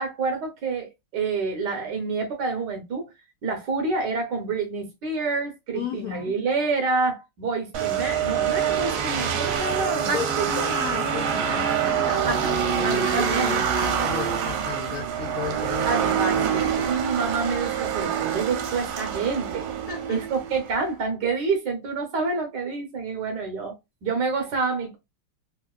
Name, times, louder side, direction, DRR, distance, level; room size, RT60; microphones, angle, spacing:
voice 1, 0.0-3.0 3.4-10.7 12.3-12.5 12.8-13.6 15.8-19.7 20.1-23.7 24.0-25.0, right 4 dB, 65° right, 1.3 m, -28 dB
voice 2, 5.7-6.3 10.0-17.1 19.9-20.2, left 7 dB, 70° left, 0.8 m, -35 dB
sound 1, 7.7-20.8, right 8 dB, 80° right, 1.5 m, -26 dB
3.6 x 2.6 x 2.2 m
omnidirectional pair, 2.3 m